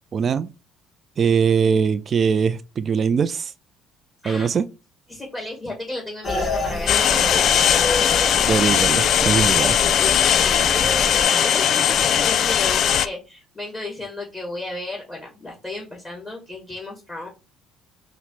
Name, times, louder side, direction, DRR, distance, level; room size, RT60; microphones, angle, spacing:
voice 1, 0.1-0.5 1.2-3.5 4.3-4.7 8.5-9.8, right 6 dB, 45° right, 0.3 m, -21 dB
voice 2, 5.1-7.9 9.8-17.3, left 2 dB, 10° left, 2.3 m, -33 dB
sound 1, 6.2-11.2, left 2 dB, 40° left, 1.6 m, -28 dB
sound 2, 6.9-13.1, left 9 dB, 55° left, 0.3 m, -19 dB
5.8 x 2.0 x 4.1 m
hypercardioid pair, 65°, 0 cm